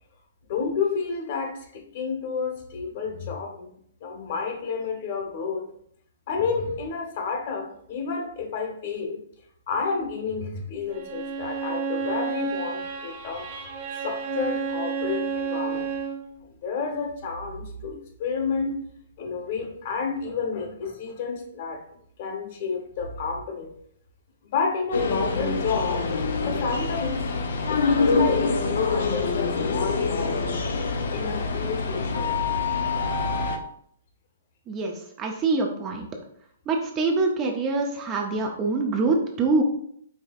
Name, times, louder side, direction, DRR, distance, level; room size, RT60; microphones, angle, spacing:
voice 1, 0.5-3.7 4.0-5.7 6.3-9.2 9.7-13.7 14.0-15.9 16.6-18.8 19.2-21.8 22.2-23.7 24.4-27.2 27.7-30.4 30.8-32.4, left 5 dB, 40° left, 3 dB, 0.9 m, -30 dB
Bowed string instrument, 10.9-16.3, right 5 dB, 35° right, 1.2 m, -31 dB
sound 1, 24.9-33.6, left 4 dB, 70° left, 0.5 m, -25 dB
voice 2, 34.7-36.1 36.7-39.6, right 3 dB, 20° right, 2 dB, 0.4 m, -25 dB
4.9 x 3.2 x 2.3 m, 0.67 s
hypercardioid pair, 165°, 0 cm